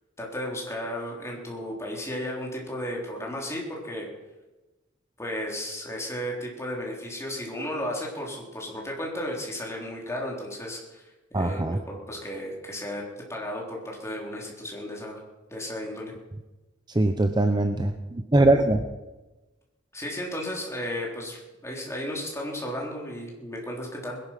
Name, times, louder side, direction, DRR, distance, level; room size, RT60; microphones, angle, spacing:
voice 1, 0.2-4.1 5.2-11.0 11.3-13.0 13.3-15.2 15.5-16.1 19.9-24.2, left 1 dB, 15° left, -2 dB, 3.9 m, -34 dB
voice 2, 11.3-11.8 16.9-18.8, right 2 dB, 20° right, 7 dB, 0.8 m, -22 dB
20.5 x 11.0 x 5.9 m, 1.1 s
head